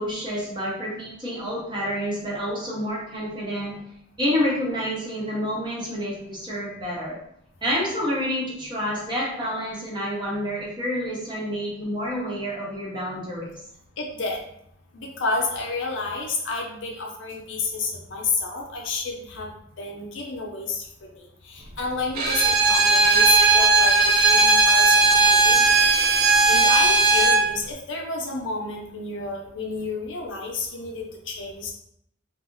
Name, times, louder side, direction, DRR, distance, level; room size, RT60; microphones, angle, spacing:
voice 1, 0.0-3.8 4.2-7.2 7.6-13.6 23.6-23.7, equal, 25° right, -5 dB, 0.8 m, -28 dB
voice 2, 14.0-14.4 14.9-19.5 19.8-25.6 25.9-26.0 26.5-31.7, left 3 dB, 65° left, 0 dB, 0.6 m, -30 dB
Bowed string instrument, 22.1-27.5, right 3 dB, 45° right, 0.4 m, -17 dB
2.6 x 2.0 x 3.7 m, 0.72 s
head